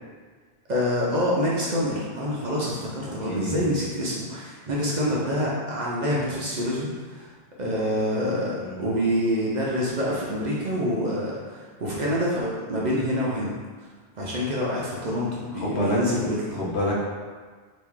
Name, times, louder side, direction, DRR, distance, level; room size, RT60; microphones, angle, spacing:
voice 1, 0.7-7.3 7.6-13.5 14.2-16.6, equal, 50° right, -5 dB, 0.6 m, -26 dB
voice 2, 3.2-3.7 8.6-8.9 15.5-16.0 16.5-16.9, left 1 dB, 75° left, -5 dB, 1.1 m, -28 dB
2.9 x 2.5 x 3.5 m, 1.5 s
omnidirectional pair, 1.1 m